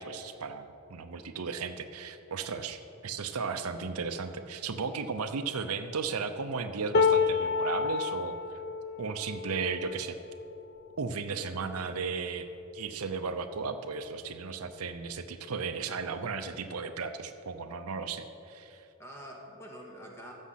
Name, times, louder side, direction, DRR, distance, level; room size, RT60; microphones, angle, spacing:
voice 1, 0.0-8.4 9.0-10.2 11.0-12.5 12.7-18.9, right 5 dB, 85° right, 9 dB, 0.7 m, -35 dB
sound 1, 6.9-13.1 13.7-13.9 14.2-14.9 15.9-16.0, left 5 dB, 45° left, 0.5 m, -31 dB
voice 2, 11.2-11.7 19.0-20.3, equal, 10° left, -1 dB, 1.6 m, -47 dB
14.5 x 6.5 x 5.8 m, 2.8 s
head